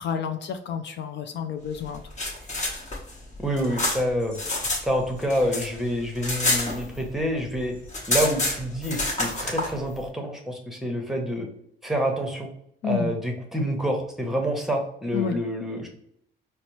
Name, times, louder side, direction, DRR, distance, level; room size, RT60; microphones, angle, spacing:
voice 1, 0.0-2.3 12.8-13.2 15.1-15.4, left 7 dB, 65° left, 7 dB, 0.4 m, -30 dB
sound 1, 1.9-4.8 5.1-7.3 7.6-7.7 7.9-9.7, left 2 dB, 35° left, 1.1 m, -28 dB
voice 2, 3.4-4.4 4.8-7.7 8.1-11.5 11.8-12.5 12.9-15.9, equal, ahead, 2 dB, 0.8 m, -27 dB
4.1 x 2.1 x 3.0 m, 0.73 s
cardioid pair, 90°, 20 cm